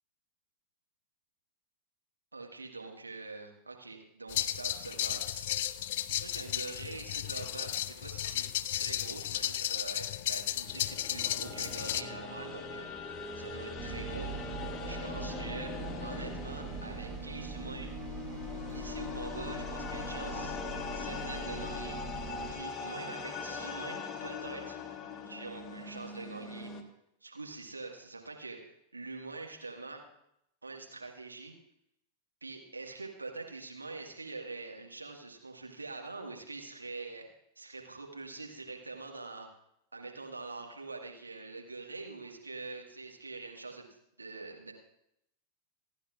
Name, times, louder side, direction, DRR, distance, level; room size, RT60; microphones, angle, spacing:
voice 1, 2.3-5.5 6.0-14.3 14.9-15.7 16.0-17.9 18.7-20.6 20.9-22.0 22.5-24.8 25.3-26.7 27.2-30.0 30.6-31.5 32.4-37.3 37.6-39.5 39.9-43.9 44.2-44.7, right 3 dB, 80° right, 1 dB, 1.8 m, -44 dB
sound 1, 4.3-12.0, left 12 dB, 55° left, 0.4 m, -34 dB
sound 2, 10.4-26.8, left 4 dB, 20° left, 1.4 m, -41 dB
sound 3, 13.8-22.5, right 4 dB, 25° right, 1.5 m, -42 dB
27.5 x 10.0 x 2.5 m, 0.78 s
figure-of-eight pair, 90°, 0 cm